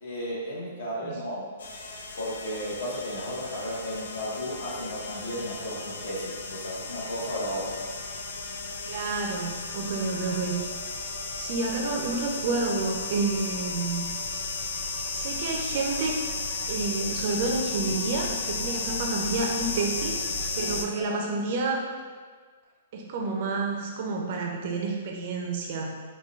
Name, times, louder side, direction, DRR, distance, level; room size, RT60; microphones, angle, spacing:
voice 1, 0.0-1.5 2.2-7.8 20.6-21.2, equal, 60° left, -6 dB, 1.1 m, -34 dB
sound 1, 1.6-20.8, left 3 dB, 80° left, 0.4 m, -34 dB
voice 2, 8.9-10.6 11.4-14.1 15.1-16.2 16.7-20.2 20.6-21.8 22.9-25.9, right 3 dB, 45° right, 0 dB, 0.4 m, -29 dB
4.3 x 2.2 x 2.3 m, 1.5 s
hypercardioid pair, 160°, 0 cm